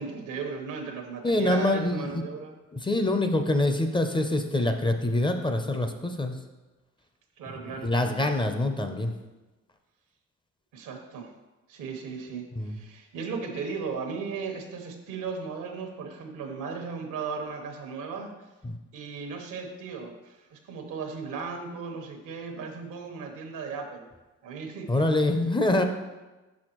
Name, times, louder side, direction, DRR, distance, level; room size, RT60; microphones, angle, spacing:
voice 1, 0.0-2.6 7.4-7.9 10.7-11.3 11.7-18.3 18.9-24.1 24.4-24.9, right 5 dB, 85° right, 3 dB, 1.0 m, -36 dB
voice 2, 1.2-2.3 2.7-6.4 7.8-9.1 12.6-12.8 18.6-18.8 24.9-25.8, left 2 dB, 15° left, 6 dB, 0.5 m, -25 dB
6.3 x 6.0 x 3.0 m, 1.1 s
cardioid pair, 90°, 30 cm